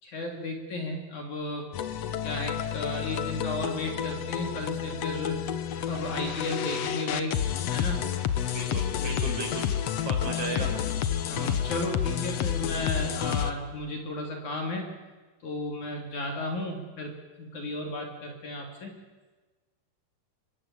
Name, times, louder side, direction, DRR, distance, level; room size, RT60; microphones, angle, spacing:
voice 1, 0.0-1.7 2.2-5.4 5.8-7.4 7.7-8.1 10.6-10.7 11.3-15.0 15.4-17.1 17.4-19.0, left 1 dB, 50° left, 3 dB, 3.9 m, -34 dB
sound 1, 1.7-13.5, left 9 dB, 85° left, 1.4 m, -30 dB
voice 2, 8.4-9.7 10.0-10.7, right 3 dB, 45° right, 2 dB, 6.6 m, -35 dB
25.5 x 22.5 x 10.0 m, 1.3 s
omnidirectional pair, 4.7 m